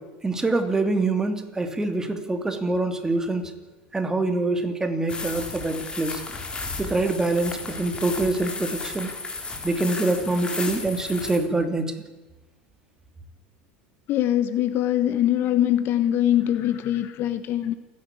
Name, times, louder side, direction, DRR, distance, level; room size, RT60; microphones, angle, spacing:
voice 1, 0.2-3.4 3.9-6.2 6.8-9.1 9.6-11.9, right 2 dB, 10° right, 6 dB, 2.8 m, -25 dB
sound 1, 5.1-11.4, left 3 dB, 20° left, 3.5 m, -34 dB
voice 2, 14.1-17.7, left 12 dB, 50° left, 12 dB, 1.2 m, -22 dB
28.5 x 11.0 x 8.5 m, 1.2 s
supercardioid pair, 110°, 5 cm